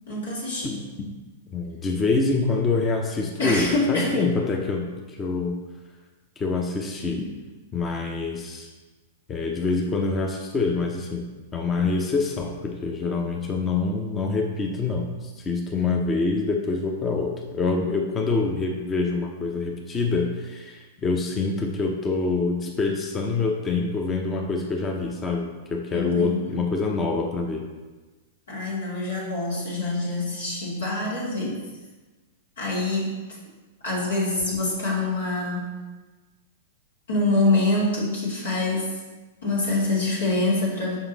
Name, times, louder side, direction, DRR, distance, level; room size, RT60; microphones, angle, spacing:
voice 1, 0.1-0.7 3.4-4.3 25.9-26.6 28.5-31.6 32.6-33.2 33.8-35.7 37.1-39.0 39.4-41.0, left 2 dB, 85° left, -5 dB, 2.2 m, -25 dB
voice 2, 0.6-1.1 1.5-5.6 6.4-7.3 7.7-8.7 9.3-27.7, left 3 dB, 25° left, 1 dB, 0.7 m, -26 dB
5.6 x 5.1 x 4.0 m, 1.2 s
hypercardioid pair, 115°, 0 cm